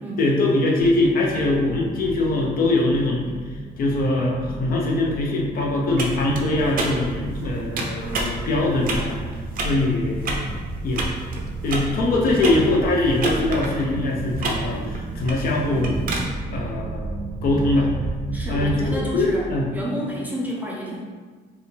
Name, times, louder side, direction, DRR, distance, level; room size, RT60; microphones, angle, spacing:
voice 1, 0.2-3.2 3.8-9.2 9.6-10.6 10.8-11.0 11.6-16.0 16.5-17.9 18.5-19.7, left 2 dB, 55° left, -1 dB, 0.7 m, -22 dB
sound 1, 0.8-19.5, right 2 dB, 85° left, 1.1 m, -37 dB
sound 2, 6.0-16.2, right 2 dB, 55° right, 0.6 m, -31 dB
sound 3, 6.3-18.9, right 3 dB, 90° right, 0.7 m, -34 dB
voice 2, 18.3-21.0, equal, 10° right, -4 dB, 0.5 m, -30 dB
4.8 x 2.3 x 3.3 m, 1.4 s
cardioid pair, 160°, 17 cm